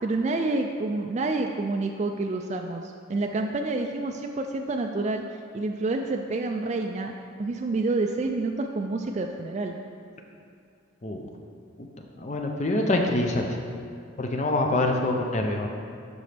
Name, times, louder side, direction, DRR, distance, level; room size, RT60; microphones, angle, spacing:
voice 1, 0.0-7.1 7.4-9.8, right 2 dB, 35° right, 3 dB, 0.3 m, -28 dB
voice 2, 12.1-13.4 14.2-15.7, left 2 dB, 35° left, 2 dB, 0.5 m, -25 dB
12.0 x 5.2 x 3.4 m, 2.4 s
head